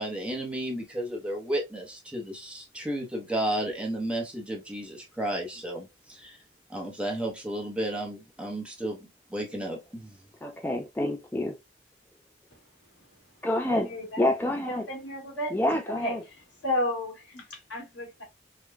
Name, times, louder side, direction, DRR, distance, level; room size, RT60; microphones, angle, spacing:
voice 1, 0.0-6.4 6.7-9.0 9.3-10.2, right 1 dB, 5° right, 0.8 m, -33 dB
voice 2, 10.4-11.6 13.4-13.9 14.2-14.9 15.5-16.2, left 1 dB, 10° left, 0.3 m, -27 dB
voice 3, 13.7-14.2 14.7-15.6 16.0-16.3 16.6-18.2, left 1 dB, 85° left, 1.6 m, -33 dB
4.9 x 2.2 x 2.2 m
head